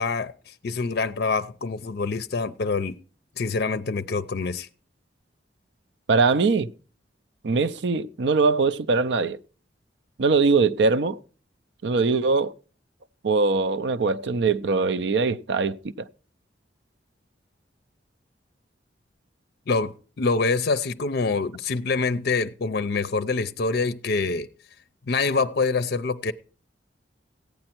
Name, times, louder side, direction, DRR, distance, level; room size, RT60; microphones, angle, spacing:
voice 1, 0.0-3.0 3.4-4.7 19.7-24.5 25.1-26.3, left 4 dB, 60° left, 0.5 m, -25 dB
voice 2, 6.1-6.7 7.4-9.4 10.2-11.2 11.8-12.5 13.2-16.1, right 4 dB, 70° right, 0.5 m, -22 dB
15.0 x 8.8 x 4.4 m
head